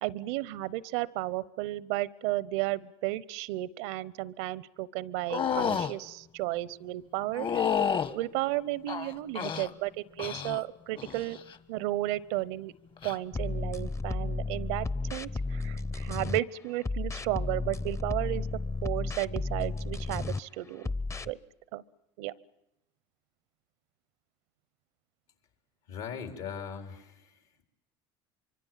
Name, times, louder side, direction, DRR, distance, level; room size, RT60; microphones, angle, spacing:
voice 1, 0.0-7.7 8.1-11.4 11.7-12.7 13.0-18.5 18.8-20.9 21.2-21.4 21.7-21.8 22.2-22.3, right 17 dB, 80° right, 20 dB, 0.8 m, -33 dB
sound 1, 5.3-5.9 7.4-8.1 8.9-9.7 10.2-10.6 11.0-11.4 13.0-13.1, left 7 dB, 40° left, 1.4 m, -30 dB
sound 2, 13.3-16.4 16.8-20.4 20.8-21.3, left 3 dB, 20° left, 0.8 m, -33 dB
voice 2, 25.9-27.6, left 7 dB, 75° left, 5 dB, 3.9 m, -40 dB
24.5 x 24.5 x 7.4 m, 0.87 s
supercardioid pair, 85°, 13 cm